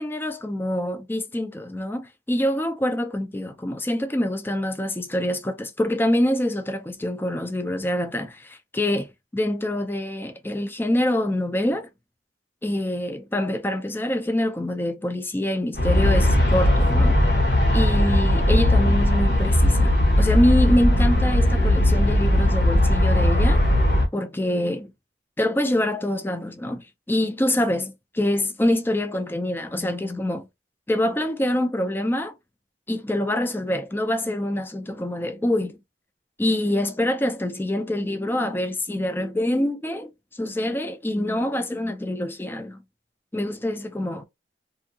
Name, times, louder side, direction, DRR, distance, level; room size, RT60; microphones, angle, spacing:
voice 1, 0.0-11.9 12.6-17.2 17.7-23.6 24.1-24.9 25.4-30.5 30.9-32.3 32.9-35.8 36.4-40.1 40.4-42.8 43.3-44.2, left 1 dB, 10° left, 0.4 m, -25 dB
Aircraft, 15.7-24.1, left 1 dB, 70° left, 1.0 m, -18 dB
2.7 x 2.6 x 2.7 m
head